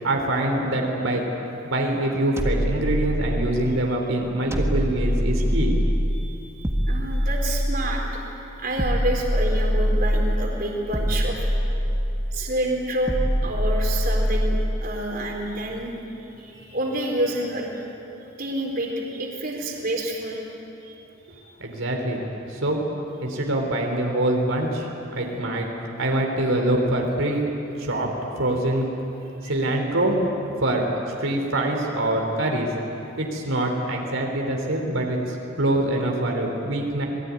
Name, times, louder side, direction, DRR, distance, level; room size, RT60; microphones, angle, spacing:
voice 1, 0.0-1.2 1.6-5.7 21.6-22.2 22.5-22.8 23.2-25.7 26.0-27.5 27.8-28.1 28.4-28.9 29.4-30.2 30.6-30.8 31.2-32.7 33.2-37.0, right 1 dB, 85° right, 1 dB, 3.7 m, -24 dB
sound 1, 2.4-3.7 4.5-6.1 6.6-8.1 8.8-10.4 10.9-12.3 13.1-14.7, equal, 15° right, 1.7 m, -23 dB
voice 2, 6.1-8.3 8.6-11.5 12.3-15.9 16.4-17.7 18.4-20.4 20.8-20.9 21.3-21.4 29.4-29.5, right 1 dB, 45° right, 0 dB, 4.1 m, -28 dB
27.5 x 20.5 x 9.7 m, 2.9 s
head